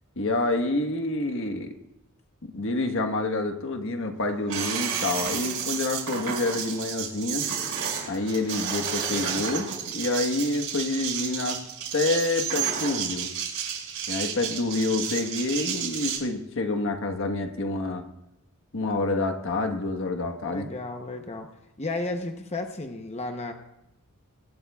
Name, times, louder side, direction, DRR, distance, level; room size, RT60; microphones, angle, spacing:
voice 1, 0.2-1.7 2.4-7.4 8.1-9.7 9.9-11.6 11.9-13.3 14.1-18.1 18.7-20.7, left 2 dB, 65° left, 5 dB, 1.3 m, -28 dB
sound 1, 4.5-16.2, right 7 dB, 65° right, 6.0 m, -31 dB
voice 2, 20.5-21.5 21.8-23.5, left 2 dB, 30° left, 4 dB, 0.9 m, -33 dB
24.0 x 12.5 x 2.4 m, 0.91 s
head